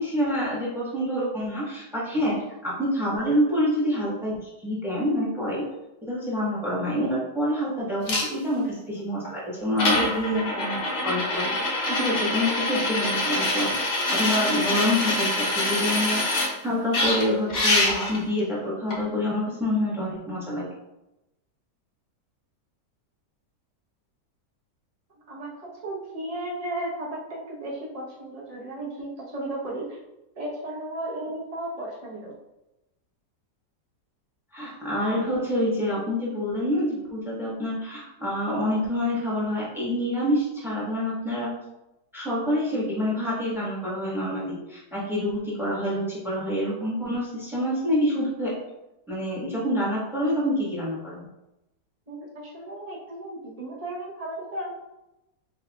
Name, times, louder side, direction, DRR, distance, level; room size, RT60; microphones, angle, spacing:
voice 1, 0.0-5.6 6.0-10.8 11.0-16.2 16.6-20.6 34.5-41.5 42.1-48.5 49.1-51.2, left 1 dB, ahead, -6 dB, 0.8 m, -27 dB
sound 1, 8.1-8.3 9.3-9.4 9.8-16.5 16.9-18.2 18.9-19.0, left 2 dB, 50° left, 0.8 m, -25 dB
voice 2, 25.3-30.0 30.4-32.3 52.1-54.7, right 1 dB, 35° right, -4 dB, 0.6 m, -34 dB
4.5 x 3.4 x 2.3 m, 0.94 s
omnidirectional pair, 1.8 m